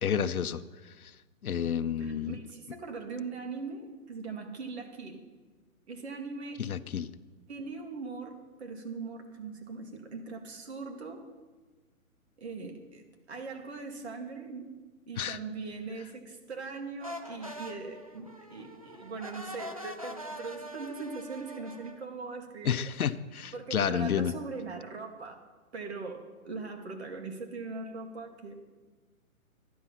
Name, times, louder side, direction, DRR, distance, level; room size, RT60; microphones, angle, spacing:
voice 1, 0.0-1.1 1.4-2.4 6.6-7.1 15.2-15.4 22.6-24.3, left 8 dB, 75° left, 13 dB, 0.8 m, -30 dB
voice 2, 2.0-5.2 5.9-6.6 7.5-11.2 12.4-13.0 13.3-14.7 15.1-22.9 23.5-25.4 25.7-28.6, right 4 dB, 45° right, 4 dB, 2.4 m, -40 dB
sound 1, 17.0-22.1, equal, 25° right, 0.5 m, -43 dB
13.5 x 10.5 x 5.8 m, 1.3 s
hypercardioid pair, 165°, 44 cm